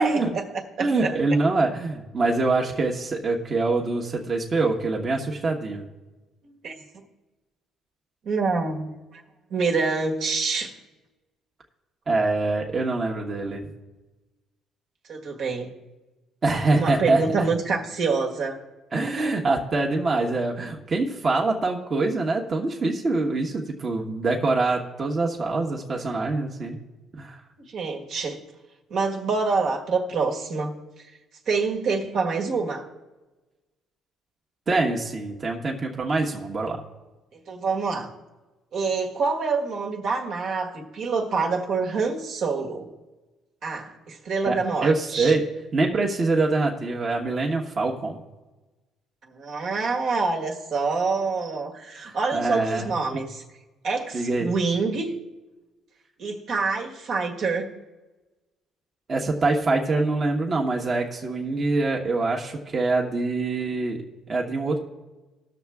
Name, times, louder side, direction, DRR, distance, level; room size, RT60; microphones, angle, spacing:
voice 1, 0.0-1.1 6.4-6.7 8.2-9.2 9.5-10.7 15.1-15.7 16.7-18.6 27.6-28.4 28.9-30.7 31.4-32.9 37.5-38.1 38.7-42.9 43.6-45.3 49.3-53.4 53.8-55.1 56.2-57.7, right 4 dB, 65° right, 1 dB, 1.6 m, -26 dB
voice 2, 0.8-5.9 12.1-13.6 16.4-17.5 18.9-26.8 27.2-27.4 34.7-36.8 44.4-45.4 45.7-48.2 52.0-53.2 54.1-54.5 59.1-64.0 64.3-64.8, right 3 dB, 35° right, -1 dB, 1.2 m, -24 dB
18.0 x 6.5 x 3.5 m, 1.2 s
cardioid pair, 95°, 0 cm